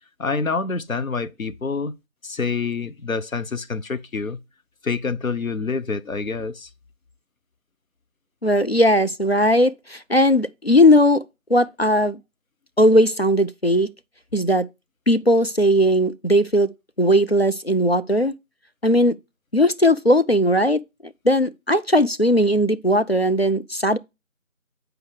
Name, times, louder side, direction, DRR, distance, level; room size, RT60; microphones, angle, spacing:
voice 1, 0.2-1.9 2.2-4.4 4.8-6.7, left 4 dB, 80° left, 0.9 m, -27 dB
voice 2, 8.4-11.2 11.5-12.2 12.8-13.9 14.3-14.6 15.1-16.7 17.0-18.3 18.8-19.2 19.5-20.8 21.2-24.0, equal, 50° left, 0.4 m, -18 dB
8.0 x 4.8 x 4.8 m
figure-of-eight pair, 175°, 40 cm